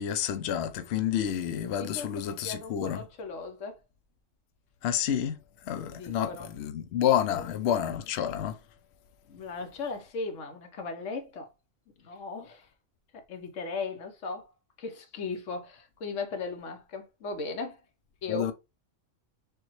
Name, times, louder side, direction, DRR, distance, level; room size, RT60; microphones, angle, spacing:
voice 1, 0.0-3.0 4.8-5.4 5.7-8.6 18.3-18.5, left 10 dB, 70° left, 0.8 m, -29 dB
voice 2, 1.7-3.8 5.9-6.5 7.3-7.7 9.3-11.5 12.0-12.7 13.1-14.5 14.8-17.8 18.2-18.5, left 4 dB, 90° left, 1.2 m, -37 dB
6.6 x 2.3 x 3.1 m
omnidirectional pair, 1.2 m